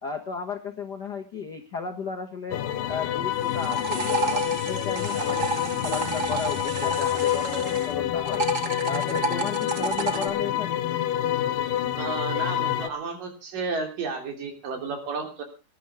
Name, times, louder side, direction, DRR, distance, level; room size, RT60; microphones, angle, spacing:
voice 1, 0.0-8.4 8.8-10.9, left 5 dB, 55° left, 2 dB, 1.1 m, -34 dB
sound 1, 2.5-12.9, left 11 dB, 85° left, 2.5 m, -27 dB
sound 2, 3.3-7.9 8.2-10.3, right 3 dB, 40° right, 1.1 m, -30 dB
voice 2, 12.0-15.4, right 4 dB, 80° right, 4 dB, 4.9 m, -32 dB
19.0 x 11.0 x 4.8 m, 0.32 s
omnidirectional pair, 3.8 m